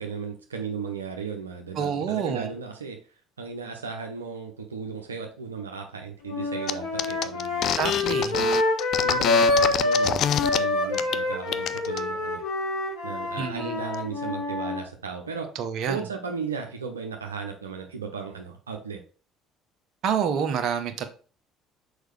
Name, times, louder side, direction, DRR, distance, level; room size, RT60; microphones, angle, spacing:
voice 1, 0.0-3.0 3.4-8.5 9.0-12.4 13.0-15.5 15.9-19.0, right 5 dB, 85° right, 0.7 m, -35 dB
voice 2, 1.8-2.5 7.8-8.3 13.4-13.7 15.6-16.0 20.0-21.1, right 7 dB, 50° right, 0.9 m, -27 dB
sound 1, 6.3-10.1 10.4-14.8, left 2 dB, 70° left, 2.3 m, -26 dB
sound 2, 6.7-6.8 7.0-10.6 10.9-11.2 11.5-12.0, left 10 dB, 50° left, 0.4 m, -26 dB
6.4 x 4.8 x 3.3 m
figure-of-eight pair, 55°, 0 cm